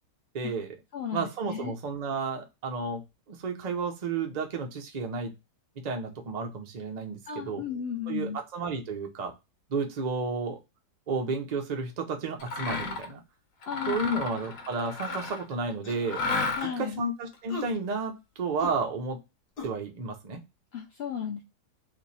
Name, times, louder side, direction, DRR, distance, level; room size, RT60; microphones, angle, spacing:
voice 1, 0.3-0.7 1.1-3.0 3.3-5.3 5.8-7.2 7.5-7.6 8.1-9.3 9.7-10.6 11.1-13.2 13.9-16.2 16.8-19.2 19.6-20.4, right 4 dB, 70° right, 3 dB, 0.4 m, -32 dB
voice 2, 0.9-1.7 7.3-8.4 13.7-14.2 16.6-17.0 20.7-21.4, left 8 dB, 75° left, 1 dB, 0.5 m, -34 dB
Mechanisms, 12.4-13.1 13.6-15.5 16.1-16.9, left 3 dB, 60° left, 1.2 m, -32 dB
sound 1, 15.1-15.3 15.8-16.1 16.6-16.8 17.5-17.7 18.6-18.7 19.6-19.7, left 2 dB, 40° left, 1.1 m, -39 dB
3.0 x 2.6 x 3.9 m, 0.24 s
omnidirectional pair, 1.7 m